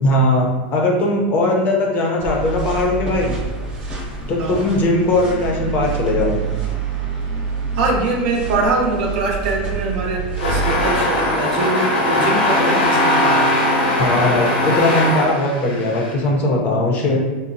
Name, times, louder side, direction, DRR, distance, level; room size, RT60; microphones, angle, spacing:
voice 1, 0.0-3.4 4.3-6.4 14.0-17.2, left 2 dB, 30° left, 0 dB, 0.5 m, -19 dB
sound 1, 2.2-10.9, right 5 dB, 15° right, 0.8 m, -26 dB
voice 2, 7.7-13.5, right 3 dB, 60° right, 1 dB, 0.6 m, -22 dB
sound 2, 10.4-16.1, left 1 dB, 75° left, 0.8 m, -19 dB
3.9 x 2.0 x 2.5 m, 1.3 s
supercardioid pair, 145°, 6 cm